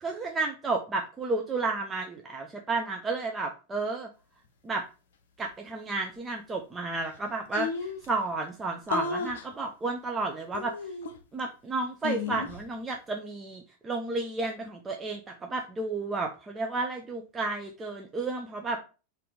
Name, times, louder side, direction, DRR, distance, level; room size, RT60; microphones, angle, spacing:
voice 1, 0.0-4.1 4.6-4.8 5.4-10.9 11.3-18.8, right 3 dB, 20° right, 2 dB, 0.5 m, -32 dB
sound 1, 6.9-7.0 7.1-7.2 7.5-8.1 8.9-9.5 10.5-11.4 12.0-12.6, left 5 dB, 65° left, 0.6 m, -33 dB
4.2 x 2.6 x 3.5 m, 0.34 s
figure-of-eight pair, 90°, 0 cm